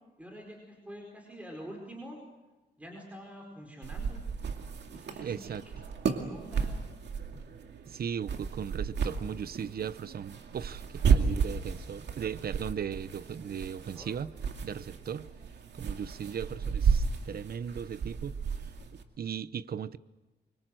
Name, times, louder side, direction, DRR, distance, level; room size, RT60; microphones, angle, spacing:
voice 1, 0.2-2.2 2.8-4.2 4.9-5.8 6.2-6.7 10.9-11.0 13.5-13.6 13.9-14.1, equal, 10° right, 4.7 m, -46 dB
sound 1, 3.8-19.0, right 6 dB, 85° right, 2.3 m, -33 dB
voice 2, 5.2-5.6 7.8-14.3 14.6-15.3 15.7-20.0, right 8 dB, 60° right, 0.8 m, -37 dB
25.5 x 24.5 x 7.8 m
wide cardioid pair, 105°, 17 cm